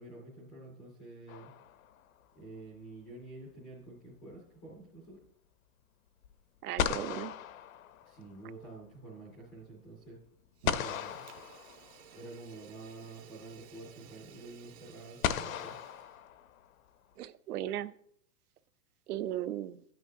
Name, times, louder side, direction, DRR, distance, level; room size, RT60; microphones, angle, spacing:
voice 1, 0.0-1.5 2.3-5.2 8.0-10.2 10.7-11.2 12.1-15.7, right 2 dB, 5° left, -7 dB, 0.4 m, -49 dB
sound 1, 1.3-2.2 6.2-6.3 6.8-8.5 10.7-12.2 13.6-13.7 15.2-16.9, left 9 dB, 60° left, 0.7 m, -36 dB
voice 2, 6.6-7.3 17.2-17.9 19.1-19.8, right 12 dB, 70° right, 15 dB, 0.7 m, -36 dB
Fire, 10.5-16.2, right 8 dB, 45° right, 1.0 m, -53 dB
13.5 x 9.0 x 2.6 m, 0.68 s
supercardioid pair, 175°, 46 cm